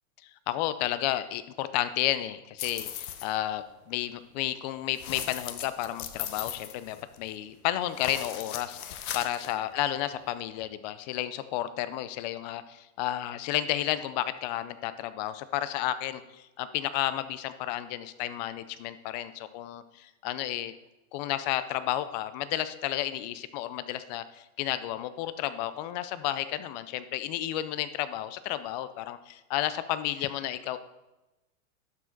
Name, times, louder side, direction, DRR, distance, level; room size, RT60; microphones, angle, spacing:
voice 1, 0.2-20.7 21.1-30.8, left 13 dB, 30° left, 13 dB, 0.4 m, -32 dB
sound 1, 2.6-3.3 4.9-7.4 7.9-9.5, left 10 dB, 75° left, 1.0 m, -38 dB
12.0 x 5.0 x 3.9 m, 1.0 s
supercardioid pair, 140°, 44 cm